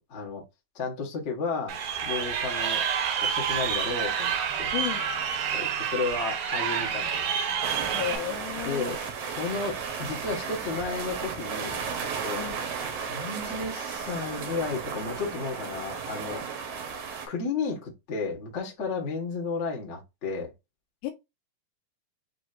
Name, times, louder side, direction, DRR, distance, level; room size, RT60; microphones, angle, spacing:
voice 1, 0.1-0.4 0.7-1.7 2.0-2.8 3.2-4.7 5.5-7.3 8.6-9.0 9.3-11.8 12.2-12.4 13.0-16.4 17.3-20.5, left 4 dB, 55° left, 0.7 m, -33 dB
Crowd, 1.7-8.2, right 7 dB, 85° right, 2.6 m, -28 dB
voice 2, 4.7-5.1 7.9-8.9 12.4-12.7 21.0-21.1, left 14 dB, 75° left, 2.3 m, -33 dB
sound 1, 7.6-17.3, right 6 dB, 70° right, 1.6 m, -34 dB
6.1 x 2.9 x 2.4 m
omnidirectional pair, 3.9 m